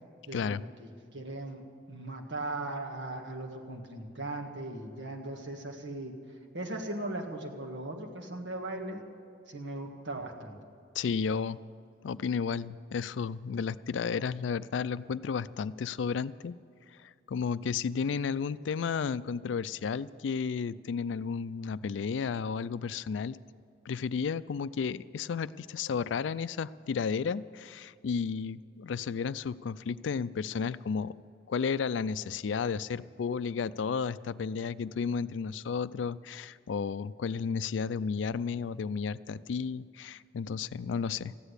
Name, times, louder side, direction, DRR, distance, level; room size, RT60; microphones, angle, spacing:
voice 1, 0.3-6.1 6.5-9.0 9.5-10.6, right 2 dB, 80° right, 2 dB, 1.7 m, -38 dB
voice 2, 10.9-11.6 12.0-16.6 17.0-23.4 23.9-31.1 31.5-41.3, left 6 dB, 90° left, 16 dB, 0.4 m, -33 dB
14.5 x 10.0 x 8.1 m, 2.4 s
head